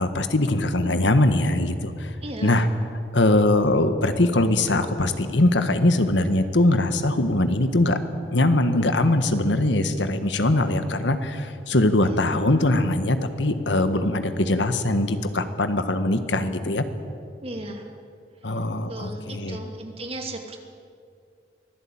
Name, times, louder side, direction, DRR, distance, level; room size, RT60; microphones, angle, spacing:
voice 1, 0.0-2.2 2.4-2.7 3.1-8.0 8.3-16.8 18.4-19.6, left 1 dB, 90° left, 9 dB, 1.6 m, -21 dB
voice 2, 2.2-2.6 12.0-12.2 17.4-17.8 18.9-20.6, right 1 dB, 35° right, 3 dB, 2.7 m, -35 dB
24.5 x 16.0 x 8.8 m, 2.4 s
head